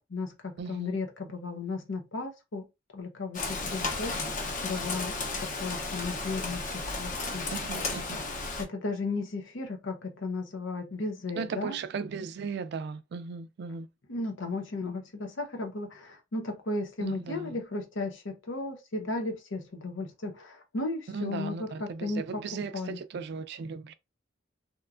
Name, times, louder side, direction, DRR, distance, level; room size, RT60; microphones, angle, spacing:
voice 1, 0.0-2.7 2.9-7.5 8.6-11.8 14.1-22.4 22.7-23.0, left 3 dB, 85° left, 0.8 m, -35 dB
voice 2, 0.6-1.0 7.5-8.2 11.4-13.9 17.0-17.6 21.1-23.9, right 5 dB, 60° right, 0.3 m, -37 dB
Rain, 3.3-8.6, left 3 dB, 45° left, 0.6 m, -33 dB
2.9 x 2.2 x 2.4 m
head